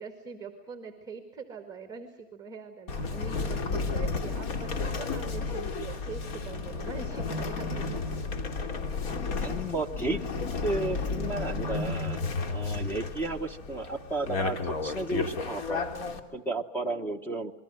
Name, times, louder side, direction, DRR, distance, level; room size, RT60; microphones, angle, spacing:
voice 1, 0.0-8.0 9.0-9.2, right 5 dB, 10° right, 5 dB, 2.0 m, -43 dB
sound 1, 2.9-16.2, left 4 dB, 50° left, 2.9 m, -32 dB
voice 2, 9.4-10.2 10.6-12.2 12.5-15.9 16.3-17.5, right 2 dB, 5° left, 7 dB, 0.9 m, -33 dB
27.5 x 22.5 x 6.5 m, 1.0 s
supercardioid pair, 160°, 37 cm